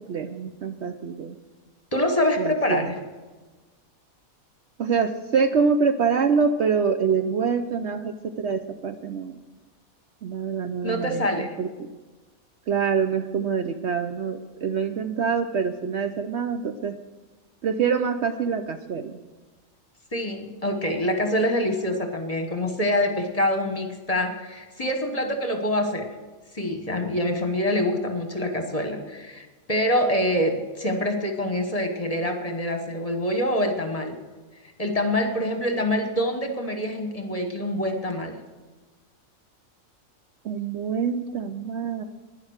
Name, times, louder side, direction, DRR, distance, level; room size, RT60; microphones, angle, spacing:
voice 1, 0.0-1.4 2.4-3.0 4.8-9.4 10.2-11.9 12.7-17.0 17.6-19.2 40.4-42.0, right 6 dB, 60° right, 7 dB, 0.8 m, -25 dB
voice 2, 1.9-3.0 10.8-11.5 20.1-26.1 26.5-34.2 34.8-38.4, left 1 dB, 25° left, 4 dB, 1.3 m, -25 dB
11.5 x 10.0 x 6.5 m, 1.3 s
omnidirectional pair, 1.5 m